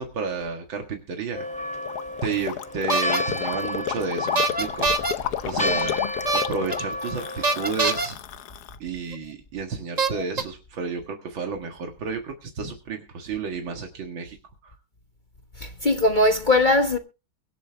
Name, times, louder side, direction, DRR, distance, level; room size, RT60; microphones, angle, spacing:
voice 1, 0.0-1.4 2.2-5.2 5.4-6.0 6.3-8.2 8.8-14.4 14.6-14.7, right 5 dB, 90° right, 2.5 m, -31 dB
Church bell, 1.3-8.0, left 1 dB, 5° left, 2.7 m, -32 dB
Gurgling, 1.9-8.8, left 10 dB, 65° left, 1.2 m, -31 dB
sound 1, 2.9-3.2 4.4-5.1 6.2-6.7 7.4-8.1 9.1-9.2 10.0-10.4, right 3 dB, 25° right, 1.2 m, -23 dB
voice 2, 15.6-17.0, left 2 dB, 30° left, 1.1 m, -21 dB
23.0 x 8.1 x 3.4 m
omnidirectional pair, 2.1 m